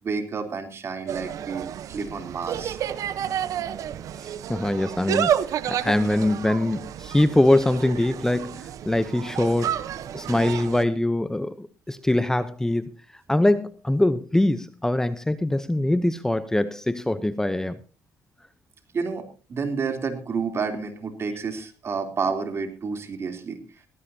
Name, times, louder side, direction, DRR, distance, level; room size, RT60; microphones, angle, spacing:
voice 1, 0.0-2.8 12.0-12.1 18.9-23.6, right 5 dB, 45° right, 3.3 m, -30 dB
Insect, 1.1-10.8, right 10 dB, 65° right, 1.0 m, -30 dB
voice 2, 4.2-5.3 5.7-9.8 10.1-12.9 13.3-17.8, left 1 dB, 10° left, 0.8 m, -23 dB
18.0 x 15.5 x 2.8 m
cardioid pair, 85°, 6 cm